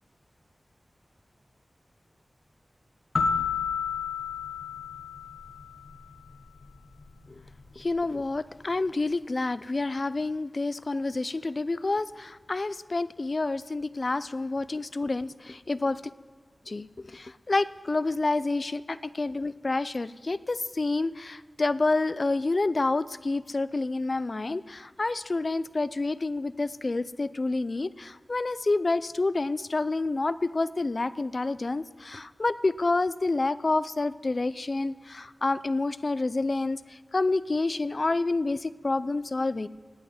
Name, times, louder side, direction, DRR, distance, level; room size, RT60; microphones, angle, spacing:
sound 1, 3.2-5.9, left 6 dB, 80° left, 1.4 m, -30 dB
voice 1, 7.8-16.0 16.7-16.9 17.1-36.8 37.1-39.7, left 3 dB, 50° left, 16 dB, 0.4 m, -28 dB
18.0 x 6.2 x 9.5 m, 1.5 s
wide cardioid pair, 75°, 0 cm